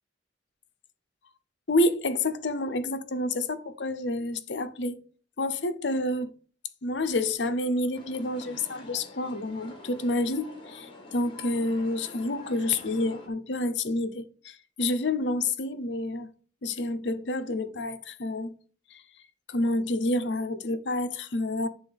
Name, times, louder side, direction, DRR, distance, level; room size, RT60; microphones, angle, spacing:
voice 1, 1.7-5.0 5.4-6.3 6.8-16.3 16.6-18.5 18.9-19.0 19.5-21.7, left 2 dB, 75° left, 0.8 m, -29 dB
sound 1, 7.9-13.3, left 2 dB, 30° left, 2.2 m, -47 dB
9.8 x 3.8 x 5.2 m
head